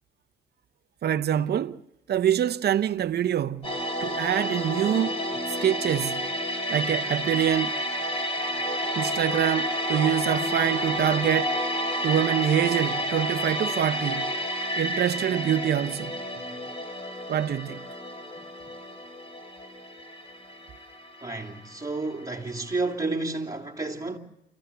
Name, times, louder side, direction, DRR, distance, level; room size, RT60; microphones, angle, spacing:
voice 1, 1.0-1.8 2.1-3.7 4.0-5.2 5.6-6.2 6.7-7.8 9.0-11.6 12.0-14.3 14.8-16.2 17.3-17.8, right 10 dB, 55° right, 0.8 m, -25 dB
sound 1, 3.6-22.5 22.7-22.9, equal, 30° left, 4.3 m, -30 dB
voice 2, 21.2-24.2, right 3 dB, 20° right, 3.0 m, -31 dB
29.0 x 15.0 x 6.8 m
cardioid pair, 90°, 20 cm